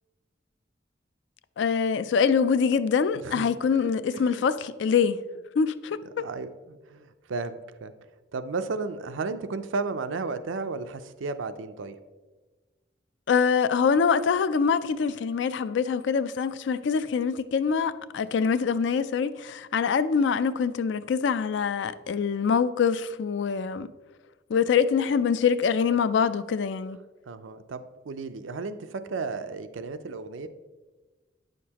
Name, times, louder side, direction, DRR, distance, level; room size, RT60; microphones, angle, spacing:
voice 1, 1.6-5.2 5.6-6.2 13.3-23.9 24.5-27.0, left 6 dB, 70° left, 0.3 m, -24 dB
voice 2, 3.1-3.5 3.8-4.5 5.0-5.2 6.2-7.9 8.3-12.0 27.3-30.5, right 4 dB, 90° right, 0.5 m, -34 dB
9.2 x 6.5 x 2.9 m
head